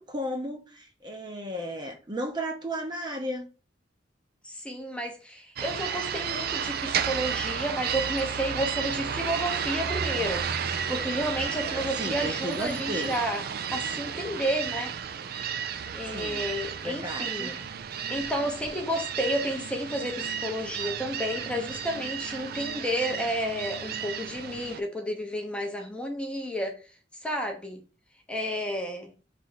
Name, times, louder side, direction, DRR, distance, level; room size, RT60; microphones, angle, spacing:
voice 1, 0.0-3.5 11.4-13.1 16.0-16.5 16.8-17.6, equal, 25° right, 0.8 m, -34 dB
voice 2, 4.4-13.4 13.7-14.9 15.9-17.6 18.1-26.8 27.2-27.8 28.3-29.1, equal, 5° left, 0.7 m, -31 dB
sound 1, 5.6-24.8, right 7 dB, 55° right, 0.4 m, -32 dB
4.0 x 3.3 x 3.9 m
head